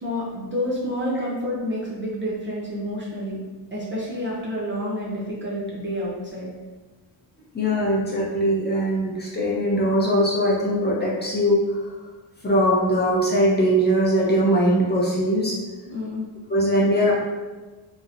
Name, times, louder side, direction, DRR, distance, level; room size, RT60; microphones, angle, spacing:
voice 1, 0.0-3.4 3.7-6.5 15.9-16.3, equal, 25° right, -5 dB, 0.4 m, -29 dB
voice 2, 7.5-11.9 12.4-15.6 16.5-17.1, equal, 25° left, -5 dB, 0.5 m, -21 dB
2.7 x 2.0 x 2.4 m, 1.3 s
cardioid pair, 100°, 45 cm